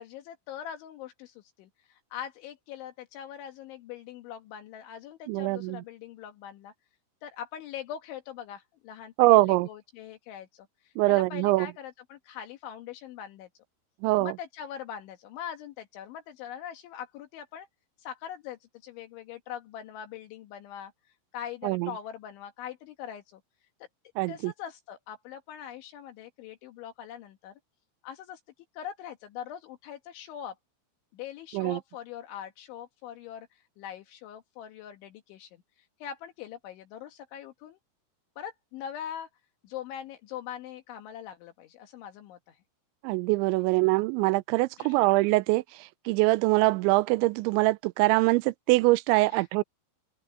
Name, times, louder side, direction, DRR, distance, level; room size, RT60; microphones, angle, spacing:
voice 1, 0.0-6.7 7.2-13.5 14.2-17.7 18.0-20.9 21.3-23.4 24.3-27.5 28.0-28.4 28.7-30.6 31.1-37.8 38.4-39.3 39.6-42.6 44.8-45.0 49.3-49.5, left 9 dB, 75° left, 3.8 m, -42 dB
voice 2, 5.3-5.8 9.2-9.7 11.0-11.7 14.0-14.3 21.6-21.9 24.2-24.5 31.5-31.8 43.0-45.6 46.1-49.6, right 21 dB, 85° right, 2.8 m, -23 dB
omnidirectional pair, 5.5 m